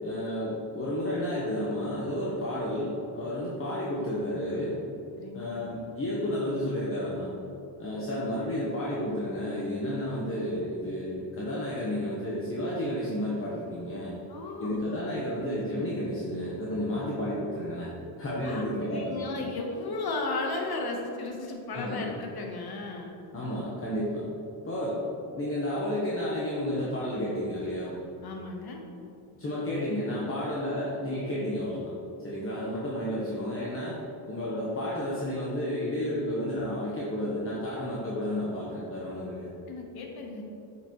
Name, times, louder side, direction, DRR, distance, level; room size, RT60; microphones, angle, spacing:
voice 1, 0.0-4.8 5.3-7.3 7.8-14.2 14.6-17.9 18.2-19.3 21.7-22.1 23.3-24.3 24.6-25.0 25.3-28.0 29.4-31.9 32.2-34.0 34.3-39.5, left 1 dB, 25° left, -6 dB, 1.1 m, -31 dB
voice 2, 5.2-5.5 14.3-15.0 18.4-18.6 18.9-23.2 28.2-28.8 39.7-40.4, left 3 dB, 50° left, 1 dB, 1.2 m, -35 dB
8.6 x 6.0 x 3.1 m, 2.7 s
cardioid pair, 130°, 47 cm